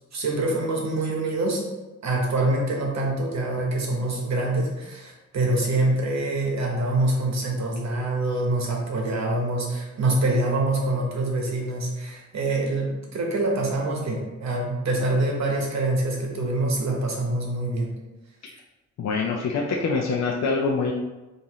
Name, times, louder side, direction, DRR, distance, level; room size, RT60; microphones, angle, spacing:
voice 1, 0.1-1.6 2.0-17.9, right 2 dB, 65° right, 0 dB, 1.1 m, -25 dB
voice 2, 19.0-20.9, left 4 dB, 65° left, -1 dB, 0.5 m, -25 dB
5.5 x 2.6 x 3.0 m, 1.1 s
wide cardioid pair, 125°, 29 cm